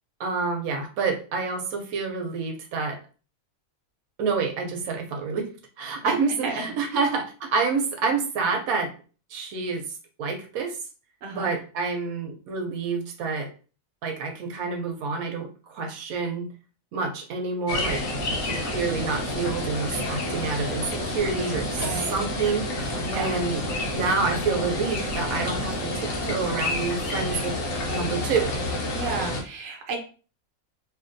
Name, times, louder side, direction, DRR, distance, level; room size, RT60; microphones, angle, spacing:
voice 1, 0.2-3.0 4.2-5.5 5.8-8.9 9.3-9.8 10.2-10.8 11.3-13.5 14.0-16.5 16.9-18.0 18.4-21.8 22.1-23.6 23.9-27.6 27.9-28.5, right 4 dB, 90° right, 3 dB, 1.1 m, -28 dB
voice 2, 11.2-11.6 21.7-22.1 23.1-23.3 28.9-30.0, right 4 dB, 65° right, 2 dB, 1.0 m, -32 dB
sound 1, 17.7-29.4, left 1 dB, 70° left, 1.0 m, -29 dB
2.7 x 2.5 x 2.5 m, 0.37 s
omnidirectional pair, 1.5 m